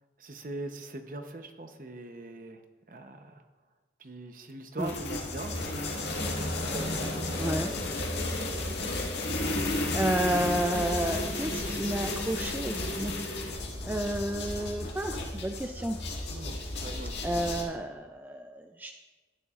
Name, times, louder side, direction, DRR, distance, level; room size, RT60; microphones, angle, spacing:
voice 1, 0.2-2.6 2.9-3.4 4.0-6.3 6.7-7.5 8.2-8.8 9.8-10.0 16.3-17.5, right 2 dB, 50° right, 6 dB, 0.8 m, -42 dB
sound 1, 4.8-17.6, left 2 dB, 75° left, 1.8 m, -33 dB
sound 2, 5.3-14.6, left 1 dB, 60° left, 1.2 m, -41 dB
voice 2, 7.4-7.7 9.9-16.0 17.2-18.9, right 1 dB, 10° right, 5 dB, 0.3 m, -31 dB
12.0 x 10.0 x 2.4 m, 1.3 s
head